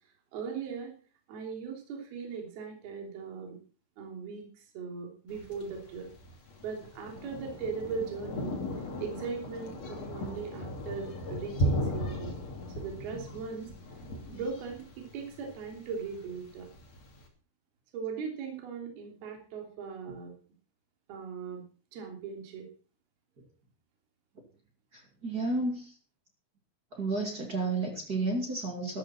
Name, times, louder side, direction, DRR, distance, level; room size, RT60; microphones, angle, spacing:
voice 1, 0.3-1.0 1.3-3.6 4.0-6.1 6.6-8.6 9.0-12.4 12.8-13.7 14.3-16.7 17.9-20.3 21.1-21.7 21.9-22.7, right 5 dB, 55° right, 1 dB, 4.7 m, -39 dB
Thunder, 5.3-17.2, equal, 40° left, 3.1 m, -37 dB
voice 2, 24.9-25.9 26.9-29.0, right 2 dB, 30° right, 1 dB, 2.1 m, -32 dB
13.5 x 13.0 x 4.4 m, 0.38 s
omnidirectional pair, 5.8 m